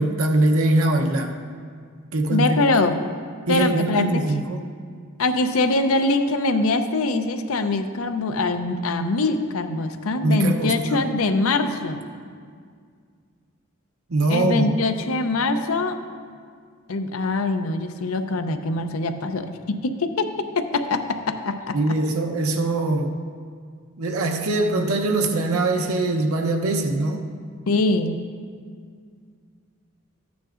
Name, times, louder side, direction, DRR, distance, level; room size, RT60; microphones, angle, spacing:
voice 1, 0.0-1.3 2.1-2.6 3.5-4.6 10.2-11.1 14.1-14.7 21.7-23.1 24.0-27.3, right 2 dB, 90° right, 3 dB, 0.8 m, -22 dB
voice 2, 2.3-3.0 3.5-4.2 5.2-12.0 14.3-16.0 16.9-22.0 27.7-28.2, left 2 dB, 85° left, 8 dB, 0.6 m, -23 dB
13.5 x 9.4 x 2.5 m, 2.1 s
head